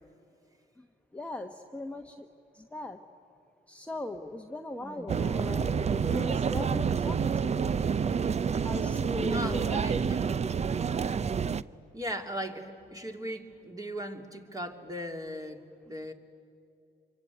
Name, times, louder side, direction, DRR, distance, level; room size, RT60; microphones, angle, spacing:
voice 1, 1.1-2.3 2.5-3.0 3.7-7.8 8.6-9.9, left 2 dB, 5° left, 3 dB, 1.2 m, -39 dB
voice 2, 4.8-5.1 9.3-10.3 11.9-16.1, equal, 20° right, 4 dB, 2.8 m, -38 dB
sound 1, 5.1-11.6, right 6 dB, 35° right, 0.6 m, -28 dB
26.0 x 24.0 x 9.4 m, 2.5 s
cardioid pair, 90°, 20 cm